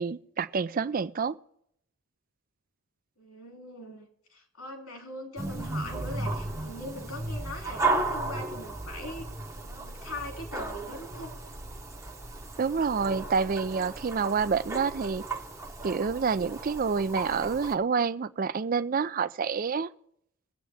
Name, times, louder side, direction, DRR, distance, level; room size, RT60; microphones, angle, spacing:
voice 1, 0.0-1.4 12.6-15.2 15.8-19.9, right 5 dB, 40° right, 0.4 m, -28 dB
voice 2, 3.2-9.3 9.6-11.3, left 1 dB, 75° left, 2.8 m, -41 dB
sound 1, 5.4-17.7, right 2 dB, 15° right, 0.8 m, -35 dB
20.5 x 8.3 x 3.4 m
head